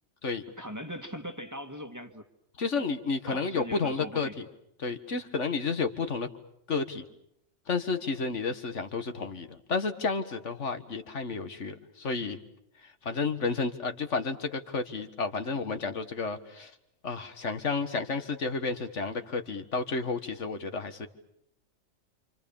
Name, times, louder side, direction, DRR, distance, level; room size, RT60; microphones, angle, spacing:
voice 1, 0.6-2.3 3.3-4.3, equal, 15° right, 6 dB, 1.6 m, -40 dB
voice 2, 2.6-4.3 4.8-6.3 6.7-7.0 7.7-12.4 12.8-16.7 17.0-21.1, left 4 dB, 80° left, 8 dB, 2.0 m, -31 dB
28.5 x 27.0 x 7.1 m, 0.77 s
omnidirectional pair, 1.2 m